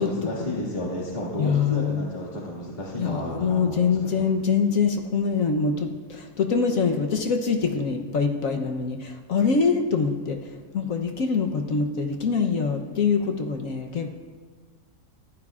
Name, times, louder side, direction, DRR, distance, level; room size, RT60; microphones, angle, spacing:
voice 1, 0.0-4.3, left 1 dB, 30° left, -5 dB, 2.2 m, -32 dB
voice 2, 1.4-2.1 3.0-10.4 10.7-14.2, left 5 dB, 70° left, 3 dB, 1.3 m, -24 dB
20.5 x 14.5 x 2.4 m, 1.5 s
omnidirectional pair, 1.5 m